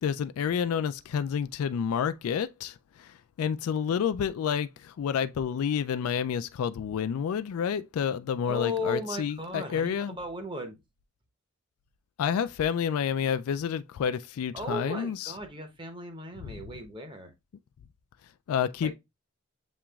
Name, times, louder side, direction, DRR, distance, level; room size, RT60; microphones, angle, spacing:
voice 1, 0.0-10.2 12.2-15.3 16.4-16.6 18.5-18.9, left 7 dB, 80° left, 0.3 m, -29 dB
voice 2, 8.4-10.8 14.5-17.3 18.8-18.9, left 2 dB, 20° right, 0.8 m, -36 dB
7.2 x 2.9 x 2.3 m
head